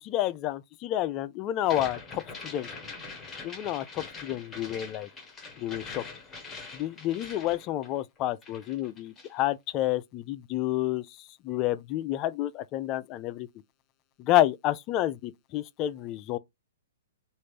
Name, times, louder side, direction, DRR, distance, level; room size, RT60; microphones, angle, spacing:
voice 1, 0.1-2.7 3.4-5.1 5.6-6.0 6.7-11.1 11.4-13.5 14.2-16.4, left 14 dB, 35° left, 0.4 m, -29 dB
sound 1, 1.6-8.2 8.4-9.4, left 4 dB, 15° left, 1.2 m, -43 dB
3.1 x 2.5 x 3.2 m
hypercardioid pair, 125°, 0 cm